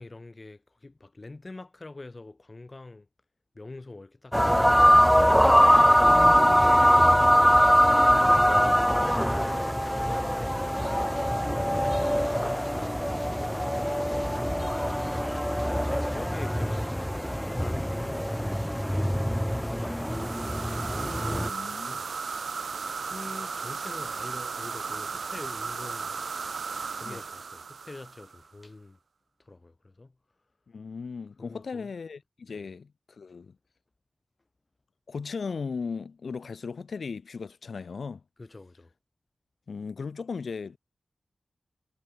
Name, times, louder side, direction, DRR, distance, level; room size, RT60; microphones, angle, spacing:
voice 1, 0.0-3.1 3.5-4.4 5.0-7.7 8.6-9.1 9.4-9.7 10.7-13.6 15.8-16.8 17.3-19.2 19.5-20.2 20.8-22.1 23.0-26.2 26.9-29.0 29.4-30.2 31.4-31.9 32.5-32.7 38.4-38.9, left 2 dB, 35° left, 5.6 m, -45 dB
sound 1, 4.3-21.5, equal, ahead, 0.8 m, -22 dB
voice 2, 8.4-9.2 20.1-20.3 21.3-22.0 27.0-27.2 30.7-33.6 35.1-38.2 39.7-40.8, left 5 dB, 75° left, 7.7 m, -37 dB
sound 2, 19.9-28.5, right 5 dB, 75° right, 2.1 m, -35 dB
wide cardioid pair, 95°, 0 cm